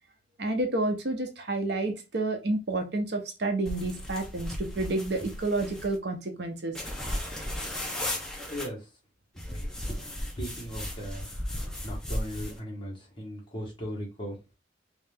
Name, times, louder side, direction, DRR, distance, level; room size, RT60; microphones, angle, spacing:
voice 1, 0.4-6.7, right 2 dB, 60° right, 0.7 m, -30 dB
sound 1, 3.7-6.0 6.7-8.7 9.4-12.6, left 1 dB, 5° left, 0.6 m, -35 dB
voice 2, 8.5-8.9 9.9-10.0 10.4-11.3 11.8-14.3, equal, 25° left, 1.3 m, -37 dB
3.2 x 2.8 x 3.5 m
head